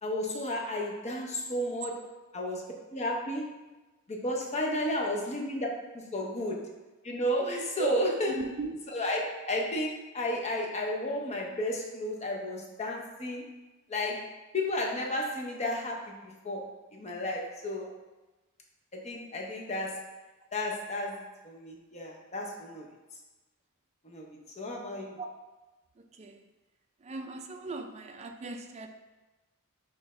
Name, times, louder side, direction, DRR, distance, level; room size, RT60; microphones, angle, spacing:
voice 1, 0.0-2.6 2.9-3.6 4.1-5.7 5.9-6.7 7.0-8.3 8.9-13.4 13.9-16.7 16.9-17.9 18.9-20.0 20.5-22.9 24.0-25.2, left 1 dB, 30° left, -1 dB, 0.7 m, -33 dB
voice 2, 8.3-8.8 17.8-17.9 25.2-25.3 26.0-26.4 27.0-28.9, right 3 dB, 30° right, 5 dB, 0.4 m, -37 dB
6.4 x 2.6 x 3.2 m, 1.1 s
head